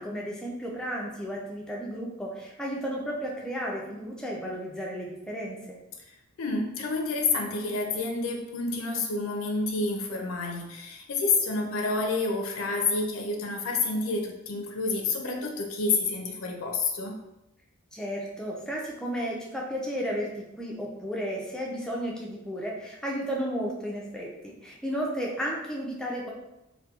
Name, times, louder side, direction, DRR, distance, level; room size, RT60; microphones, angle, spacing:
voice 1, 0.0-5.8 17.9-26.3, equal, 5° left, -3 dB, 0.3 m, -33 dB
voice 2, 6.4-17.1, left 3 dB, 70° left, 2 dB, 0.4 m, -29 dB
2.8 x 2.1 x 2.3 m, 0.94 s
head